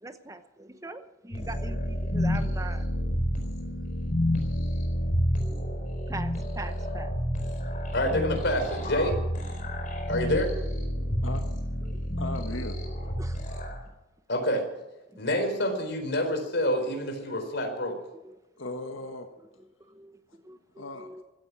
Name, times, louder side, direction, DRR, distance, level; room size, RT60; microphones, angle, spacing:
voice 1, 0.0-2.9 4.6-4.7 5.5-5.7 6.1-7.1 11.8-12.0 13.2-13.7 15.9-16.0 18.2-18.4 19.9-21.2, right 2 dB, 15° right, 9 dB, 0.9 m, -42 dB
sound 1, 1.3-13.8, equal, 40° left, 4.5 m, -29 dB
voice 2, 7.9-9.2 10.1-10.5 14.3-14.6 15.2-18.0, left 1 dB, 60° left, 5 dB, 4.3 m, -27 dB
voice 3, 12.2-12.8 18.6-19.3 20.3-20.4 20.8-21.2, left 2 dB, 80° left, 5 dB, 1.6 m, -37 dB
16.0 x 14.0 x 6.2 m, 1.0 s
head